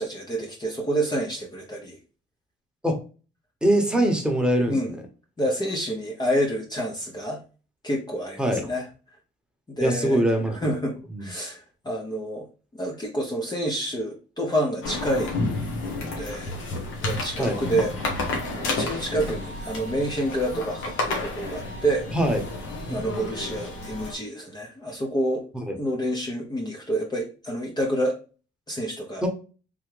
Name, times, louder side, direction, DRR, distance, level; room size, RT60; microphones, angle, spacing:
voice 1, 0.0-2.0 4.7-4.9 5.4-7.4 7.8-8.9 9.7-10.2 10.6-12.4 12.7-15.4 16.0-16.6 17.0-18.2 18.6-22.1 22.9-25.4 25.8-28.2 28.7-29.2, right 1 dB, 20° left, 0 dB, 0.8 m, -28 dB
voice 2, 3.6-4.8 8.4-8.7 9.8-10.7 11.1-11.3 17.4-17.6 22.1-22.6 22.9-23.2 25.5-25.8 29.2-29.3, right 1 dB, 5° right, 2 dB, 1.1 m, -23 dB
sound 1, 14.8-24.1, left 2 dB, 90° left, 1.2 m, -31 dB
3.5 x 3.1 x 3.2 m, 0.36 s
cardioid pair, 90°, 20 cm